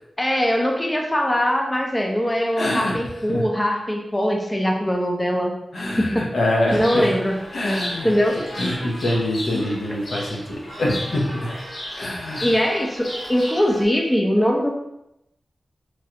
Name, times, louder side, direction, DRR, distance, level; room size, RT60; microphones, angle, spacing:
voice 1, 0.2-5.5 6.0-6.3 6.7-7.4 8.0-8.4 12.4-14.7, equal, 15° left, 0 dB, 0.5 m, -21 dB
voice 2, 2.6-3.0 3.3-3.4 5.7-7.1 7.5-8.1 8.6-11.5 12.0-12.5, left 1 dB, 70° left, -2 dB, 0.6 m, -24 dB
Chirp tweet, 6.7-13.9, left 1 dB, 90° left, 1.3 m, -34 dB
3.1 x 2.4 x 2.8 m, 0.85 s
wide cardioid pair, 90°, 0 cm